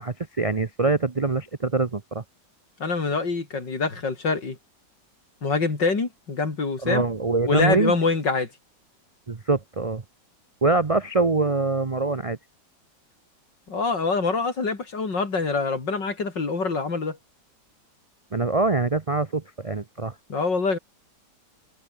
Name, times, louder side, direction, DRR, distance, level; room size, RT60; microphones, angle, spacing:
voice 1, 0.0-2.2 6.8-7.9 9.3-10.0 10.6-12.4 18.3-20.1, right 3 dB, 30° right, 0.6 m, -24 dB
voice 2, 2.8-4.6 5.4-7.0 7.5-8.5 13.7-17.2 20.3-20.8, left 4 dB, 85° left, 4.5 m, -25 dB
omnidirectional pair, 1.9 m